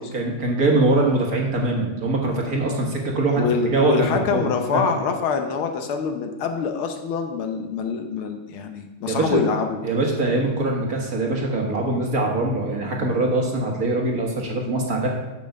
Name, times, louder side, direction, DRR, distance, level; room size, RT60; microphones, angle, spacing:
voice 1, 0.1-4.8 9.1-9.4 9.8-15.1, right 2 dB, 45° right, 0 dB, 1.6 m, -23 dB
voice 2, 3.4-9.8, left 6 dB, 75° left, 5 dB, 1.7 m, -25 dB
8.5 x 6.0 x 6.6 m, 1.1 s
omnidirectional pair, 2.4 m